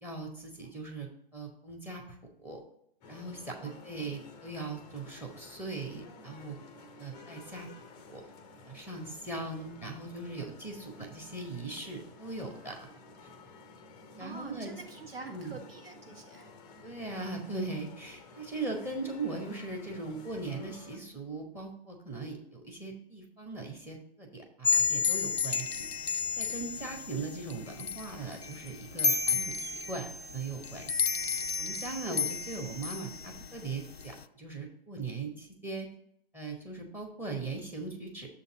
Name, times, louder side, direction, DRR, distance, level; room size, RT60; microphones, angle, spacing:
voice 1, 0.0-2.0 2.4-2.6 3.1-6.6 7.0-7.7 8.1-8.2 8.7-12.8 14.2-14.7 15.3-15.6 16.8-30.9 31.3-35.9 36.3-38.4, right 3 dB, 5° right, 3 dB, 1.0 m, -39 dB
sound 1, 3.0-21.0, left 3 dB, 15° left, 0.6 m, -52 dB
voice 2, 14.2-16.5, right 3 dB, 70° right, 2 dB, 1.6 m, -46 dB
sound 2, 24.6-34.2, left 5 dB, 85° left, 0.5 m, -32 dB
6.8 x 4.0 x 6.6 m, 0.70 s
figure-of-eight pair, 120°, 31 cm